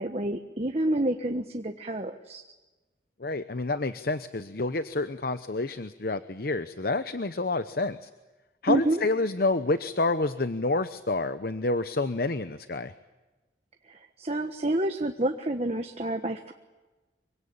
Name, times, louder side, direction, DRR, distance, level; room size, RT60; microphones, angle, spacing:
voice 1, 0.0-2.4 8.7-9.0 13.9-16.5, right 1 dB, 35° right, 5 dB, 1.4 m, -29 dB
voice 2, 3.2-8.1 8.6-12.9, left 2 dB, 55° left, 11 dB, 0.9 m, -28 dB
26.0 x 24.5 x 8.8 m, 1.2 s
head